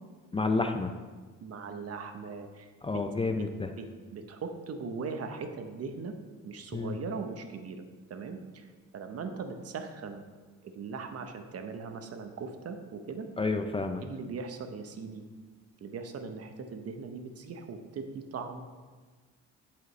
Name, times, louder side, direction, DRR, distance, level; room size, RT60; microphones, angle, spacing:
voice 1, 0.3-0.9 2.8-3.7 6.7-7.0 13.4-14.0, left 3 dB, 20° left, 7 dB, 0.4 m, -30 dB
voice 2, 1.4-3.0 3.4-3.5 3.8-6.2 6.4-7.8 8.1-8.7 8.9-10.2 10.6-13.3 14.0-15.3 15.8-18.6, right 4 dB, 55° right, 6 dB, 0.9 m, -39 dB
10.5 x 5.1 x 3.2 m, 1.4 s
cardioid pair, 90°, 30 cm